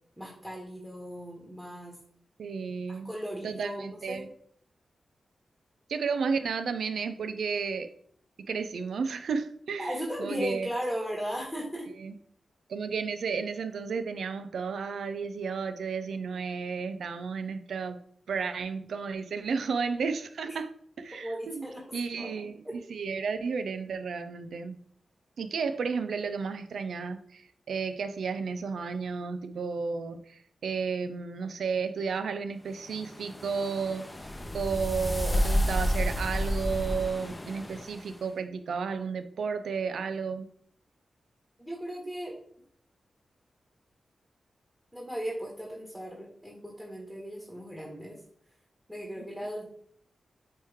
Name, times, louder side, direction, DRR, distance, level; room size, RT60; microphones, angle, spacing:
voice 1, 0.2-2.0 2.9-4.2 9.8-11.9 20.4-20.5 21.2-22.3 22.6-22.8 41.6-42.4 44.9-48.2 48.9-49.7, equal, 5° right, -2 dB, 1.7 m, -37 dB
voice 2, 2.4-3.1 3.4-4.3 5.9-7.9 8.5-10.7 12.0-12.1 12.7-18.0 18.3-20.7 21.0-21.7 21.9-24.8 25.4-34.1 34.5-40.5, right 5 dB, 85° right, 9 dB, 0.5 m, -32 dB
sound 1, 32.8-38.1, equal, 20° left, 0.7 m, -30 dB
8.8 x 3.1 x 3.6 m, 0.64 s
cardioid pair, 75°, 0 cm